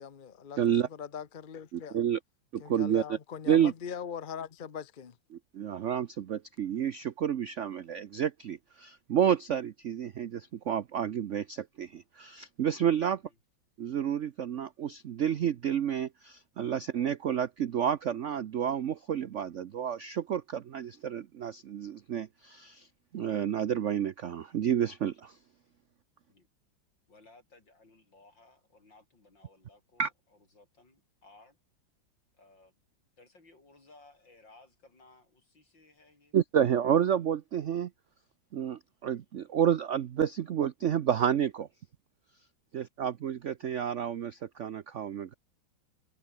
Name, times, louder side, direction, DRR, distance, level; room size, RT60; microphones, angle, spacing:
voice 1, 0.0-2.0 2.6-5.1, left 7 dB, 40° left, 0.7 m, -41 dB
voice 2, 0.6-0.9 1.7-2.2 2.5-3.2 3.5-3.7 5.5-13.2 13.8-22.9 23.1-25.4 30.0-30.1 36.3-37.9 38.5-41.7 42.7-45.3, right 9 dB, 70° right, 0.7 m, -30 dB
voice 3, 27.1-30.1 30.5-31.6 32.3-32.7 33.2-36.4 42.7-42.9, left 2 dB, 65° left, 7.0 m, -59 dB
omnidirectional pair, 2.2 m